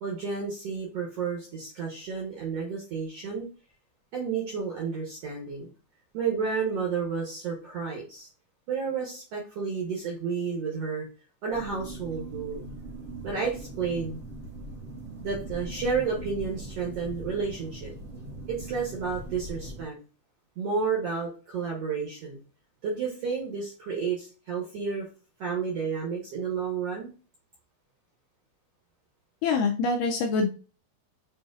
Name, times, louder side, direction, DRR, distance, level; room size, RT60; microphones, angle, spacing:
voice 1, 0.0-3.5 4.1-5.7 6.1-8.3 8.7-11.0 11.4-12.7 13.2-14.2 15.2-17.9 18.5-20.0 20.6-22.4 22.8-25.1 25.4-27.1, right 5 dB, 70° right, -2 dB, 1.6 m, -31 dB
sound 1, 11.5-19.9, right 2 dB, 40° right, 1.1 m, -40 dB
voice 2, 29.4-30.5, left 4 dB, 80° left, 3 dB, 1.9 m, -25 dB
6.8 x 2.7 x 2.4 m, 0.36 s
omnidirectional pair, 4.1 m